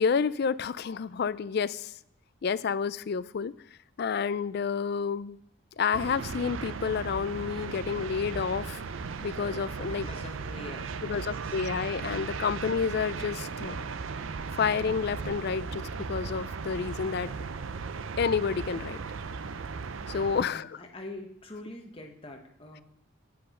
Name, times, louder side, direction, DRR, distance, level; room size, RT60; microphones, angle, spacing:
voice 1, 0.0-1.9 2.4-3.5 4.0-5.4 5.8-8.8 9.2-10.1 11.0-13.9 14.6-17.3 18.2-19.0 20.1-20.8, left 6 dB, 50° left, 17 dB, 0.3 m, -29 dB
sound 1, 5.9-20.5, right 5 dB, 75° right, 0.5 m, -37 dB
voice 2, 9.8-11.6 20.4-22.8, left 1 dB, 30° left, 2 dB, 1.4 m, -45 dB
8.4 x 7.6 x 5.7 m, 0.73 s
head